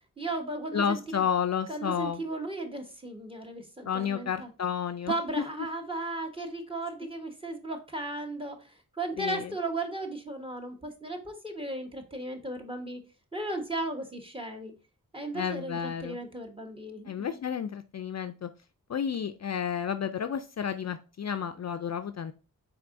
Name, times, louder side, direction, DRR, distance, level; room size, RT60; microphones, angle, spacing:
voice 1, 0.2-1.2 1.7-4.5 5.1-13.0 13.3-14.7 15.1-17.4, right 2 dB, 15° right, 5 dB, 1.2 m, -36 dB
voice 2, 0.7-2.2 3.9-5.1 9.2-9.5 15.3-16.2 17.1-18.5 18.9-22.3, left 8 dB, 45° left, 10 dB, 0.4 m, -31 dB
4.5 x 3.7 x 2.5 m, 0.32 s
cardioid pair, 40°, 37 cm